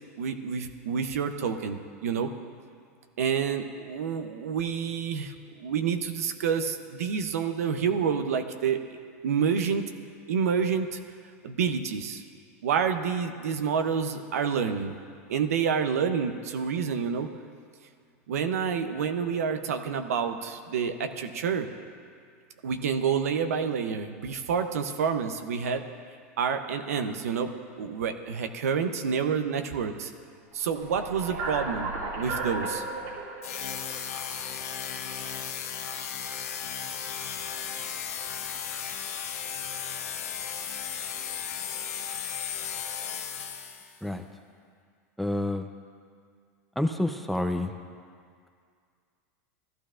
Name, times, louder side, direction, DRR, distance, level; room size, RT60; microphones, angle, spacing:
voice 1, 0.2-2.3 3.2-5.3 5.6-8.8 9.2-9.8 10.3-11.0 11.4-12.2 12.6-15.0 15.3-17.3 18.3-21.7 22.6-25.8 26.4-27.5 27.8-30.1 30.5-32.8, right 6 dB, 85° right, 7 dB, 0.7 m, -28 dB
sound 1, 30.6-34.9, right 2 dB, 70° right, 2.3 m, -35 dB
sound 2, 33.4-44.0, left 8 dB, 80° left, 1.0 m, -35 dB
voice 2, 45.2-45.7 46.8-47.7, left 1 dB, ahead, 5 dB, 0.6 m, -28 dB
15.0 x 12.0 x 2.5 m, 2.2 s
hypercardioid pair, 110°, 8 cm